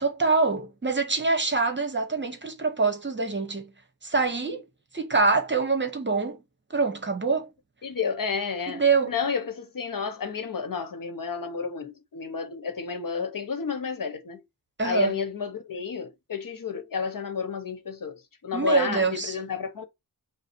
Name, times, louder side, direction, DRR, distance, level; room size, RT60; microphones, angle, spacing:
voice 1, 0.0-3.7 4.0-4.6 4.9-6.4 6.7-7.5 8.7-9.1 14.8-15.1 18.5-19.3, right 4 dB, 30° right, 0.9 m, -25 dB
voice 2, 7.8-14.4 14.8-19.8, left 5 dB, 60° left, 1.0 m, -31 dB
5.2 x 2.0 x 4.4 m
wide cardioid pair, 105°, 37 cm